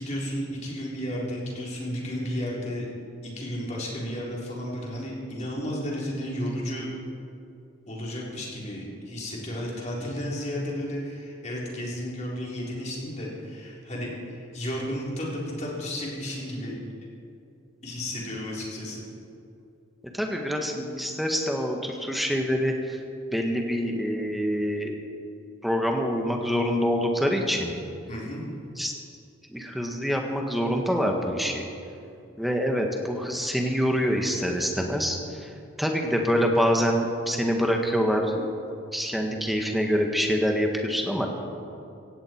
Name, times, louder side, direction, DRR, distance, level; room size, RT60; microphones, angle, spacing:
voice 1, 0.0-2.9 3.2-6.9 7.9-16.7 17.8-19.0 28.1-28.4, equal, 35° left, -4 dB, 3.9 m, -33 dB
voice 2, 20.1-23.0 23.3-24.9 25.6-27.7 28.8-28.9 29.5-31.6 32.4-35.5 35.8-38.5 38.9-41.3, equal, ahead, 1 dB, 1.6 m, -26 dB
17.0 x 16.5 x 4.6 m, 2.6 s
head